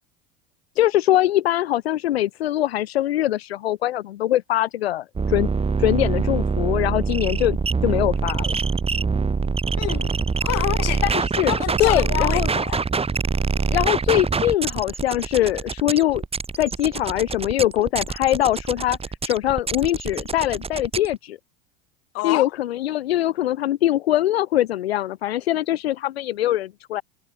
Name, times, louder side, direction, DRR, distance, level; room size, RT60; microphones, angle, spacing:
voice 1, 0.8-5.5 5.8-7.6 7.8-8.6 11.0-11.5 11.8-12.5 13.7-16.2 16.6-21.4 22.2-27.0, left 13 dB, 80° left, 0.9 m, -22 dB
sound 1, 5.2-21.1, right 5 dB, 20° right, 2.3 m, -25 dB
voice 2, 9.8-10.1 10.4-11.0 11.5-12.8 22.1-22.5, left 20 dB, 55° left, 3.2 m, -27 dB
hypercardioid pair, 80°, 31 cm